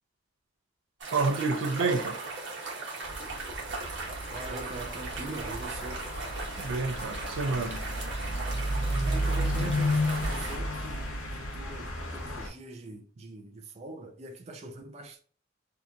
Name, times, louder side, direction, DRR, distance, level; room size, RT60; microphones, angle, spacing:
sound 1, 1.0-10.6, right 3 dB, 65° right, 1.0 m, -38 dB
voice 1, 1.1-2.2 6.6-7.8, right 3 dB, 90° right, 0.5 m, -29 dB
sound 2, 3.0-12.5, equal, 85° left, 0.8 m, -32 dB
voice 2, 4.3-6.1 9.1-15.2, right 3 dB, 30° right, 0.3 m, -42 dB
2.8 x 2.2 x 2.5 m
head